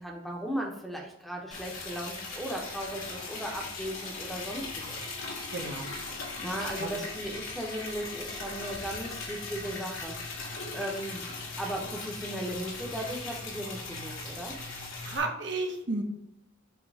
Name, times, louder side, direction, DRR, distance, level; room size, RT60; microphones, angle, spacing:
voice 1, 0.0-5.0 6.4-10.2 10.7-14.5, right 1 dB, ahead, -1 dB, 0.9 m, -37 dB
Liquid, 1.5-15.2, left 3 dB, 80° left, 2.1 m, -39 dB
voice 2, 5.5-5.9 6.8-6.9 15.0-16.0, right 3 dB, 55° right, 2 dB, 1.0 m, -32 dB
8.3 x 3.1 x 4.8 m, 0.80 s
head